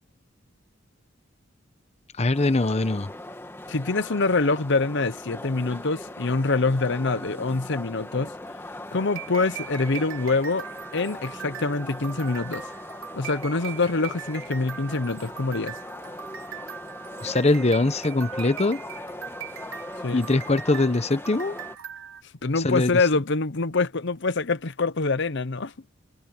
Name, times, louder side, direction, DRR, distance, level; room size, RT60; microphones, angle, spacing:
voice 1, 2.2-3.1 17.2-18.8 20.1-21.6 22.6-22.9, left 2 dB, 30° left, 1.0 m, -22 dB
sound 1, 2.3-21.8, left 1 dB, 10° left, 1.8 m, -40 dB
voice 2, 3.7-8.3 8.9-10.6 10.9-12.6 13.1-15.8 20.0-20.2 22.4-25.7, left 3 dB, 60° left, 0.9 m, -25 dB
sound 2, 9.0-22.2, right 8 dB, 85° right, 3.0 m, -40 dB
head